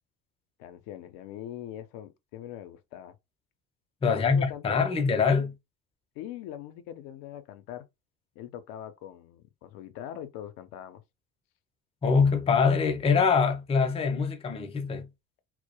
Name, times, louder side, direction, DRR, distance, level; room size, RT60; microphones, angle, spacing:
voice 1, 0.6-3.2 4.0-5.0 6.2-7.9 8.4-11.0, left 11 dB, 75° left, 0.5 m, -42 dB
voice 2, 4.0-5.5 12.0-15.1, left 5 dB, 20° left, 0.4 m, -24 dB
2.2 x 2.0 x 2.8 m
supercardioid pair, 85°, 33 cm